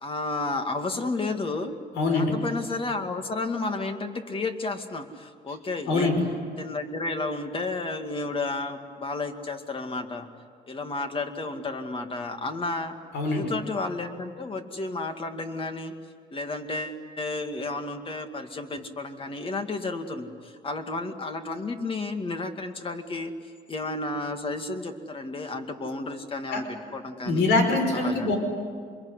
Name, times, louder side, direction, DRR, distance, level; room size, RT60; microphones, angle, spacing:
voice 1, 0.0-1.7 2.1-6.1 6.6-10.3 10.7-13.0 13.2-15.9 16.3-23.3 23.7-27.5 27.9-28.3, left 3 dB, 30° left, 6 dB, 2.2 m, -32 dB
voice 2, 1.9-2.3 5.9-6.2 13.1-13.5 26.5-26.6 27.2-28.4, left 3 dB, 80° left, 5 dB, 5.4 m, -23 dB
26.0 x 22.0 x 9.8 m, 2.1 s
cardioid pair, 120°, 18 cm